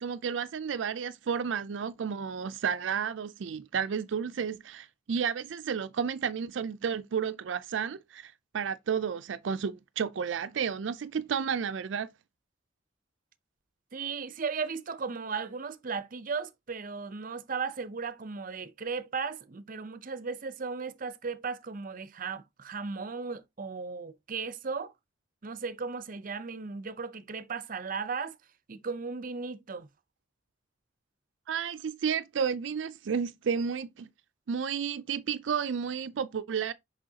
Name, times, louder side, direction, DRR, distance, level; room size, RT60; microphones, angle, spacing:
voice 1, 0.0-12.1 31.5-34.1 34.5-36.7, right 7 dB, 90° right, 0.4 m, -32 dB
voice 2, 13.9-24.9 25.4-28.4 28.7-29.9, right 5 dB, 50° right, 0.6 m, -36 dB
6.2 x 5.5 x 2.8 m
head